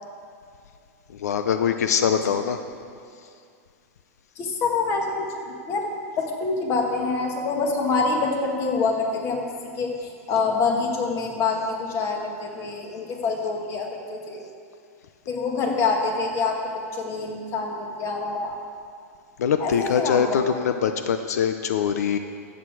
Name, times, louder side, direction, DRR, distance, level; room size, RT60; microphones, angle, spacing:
voice 1, 1.1-2.6 19.4-22.2, left 7 dB, 90° left, 8 dB, 0.6 m, -23 dB
voice 2, 4.3-9.4 9.8-14.4 15.3-16.6 16.9-18.6 19.6-20.6, left 4 dB, 30° left, 2 dB, 1.7 m, -26 dB
13.5 x 8.3 x 4.8 m, 2.4 s
supercardioid pair, 145°, 8 cm